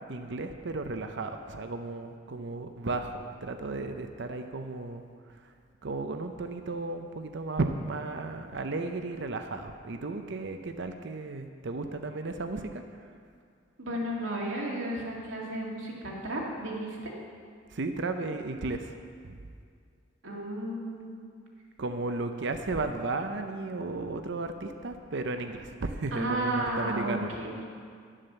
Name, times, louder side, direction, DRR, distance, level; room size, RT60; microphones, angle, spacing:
voice 1, 0.1-5.0 5.4-5.5 5.8-12.8 17.7-18.9 19.2-19.3 21.8-27.3, right 3 dB, 65° right, 7 dB, 0.6 m, -34 dB
voice 2, 13.8-17.1 20.2-21.2 26.1-27.6, right 1 dB, 85° right, -3 dB, 2.2 m, -33 dB
11.0 x 7.4 x 6.7 m, 2.2 s
head